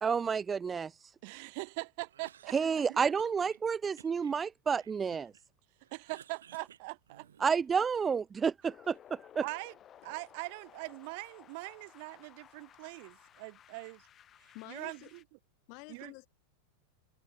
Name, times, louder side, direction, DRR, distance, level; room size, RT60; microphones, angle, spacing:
voice 1, 0.0-0.9 2.5-5.3 7.4-9.2, right 6 dB, 20° right, 0.7 m, -30 dB
voice 2, 1.2-3.0 5.9-7.5 9.4-9.7 10.0-14.0 14.7-15.2 15.9-16.1, right 30 dB, 55° right, 3.1 m, -42 dB
Cough, 2.0-3.6 4.0-5.5 5.8-7.7, right 9 dB, 80° right, 4.4 m, -57 dB
sound 1, 8.7-15.2, left 10 dB, 35° left, 7.5 m, -58 dB
voice 3, 14.5-15.1 15.7-16.3, left 34 dB, 55° left, 4.4 m, -49 dB
hypercardioid pair, 95°, 0 cm